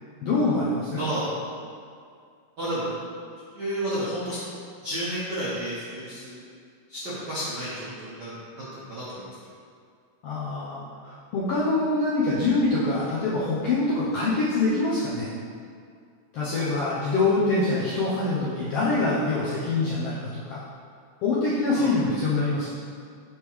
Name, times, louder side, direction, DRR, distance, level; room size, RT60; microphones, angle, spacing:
voice 1, 0.2-1.0 10.2-15.3 16.3-20.6 21.2-22.7, left 2 dB, 75° left, -8 dB, 1.4 m, -25 dB
voice 2, 0.9-1.3 2.6-2.9 3.5-4.4 4.8-6.4 6.9-9.3 16.4-16.8 19.2-19.3 21.7-21.9, right 1 dB, 70° right, -10 dB, 1.0 m, -32 dB
9.8 x 3.7 x 3.1 m, 2.2 s
omnidirectional pair, 3.6 m